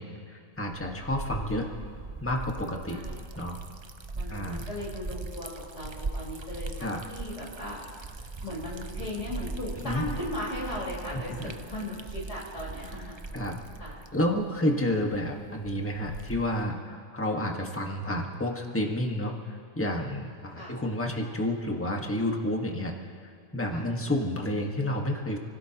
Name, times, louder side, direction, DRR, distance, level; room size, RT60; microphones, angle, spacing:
voice 1, 0.0-1.7 2.2-3.0 3.4-3.6 4.3-4.6 6.8-7.0 9.8-10.0 11.4-11.5 13.3-13.5 14.1-22.9 23.2-25.4, left 1 dB, 10° left, 0 dB, 1.4 m, -30 dB
Liquid, 0.6-16.7, right 3 dB, 50° right, 0.3 m, -40 dB
voice 2, 4.1-7.8 8.4-13.1 13.8-14.1 20.5-20.8 23.7-23.9, left 1 dB, 50° left, -6 dB, 5.0 m, -37 dB
29.0 x 17.0 x 3.0 m, 2.3 s
omnidirectional pair, 1.5 m